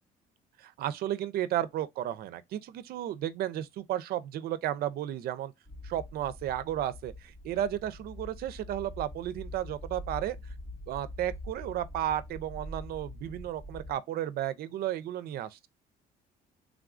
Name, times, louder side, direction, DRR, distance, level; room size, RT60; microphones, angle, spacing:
voice 1, 0.6-5.5 5.8-10.4 10.9-15.7, right 12 dB, 65° right, 0.4 m, -33 dB
sound 1, 5.7-14.0, left 1 dB, 15° left, 0.5 m, -44 dB
3.4 x 2.4 x 2.4 m
cardioid pair, 110°, 17 cm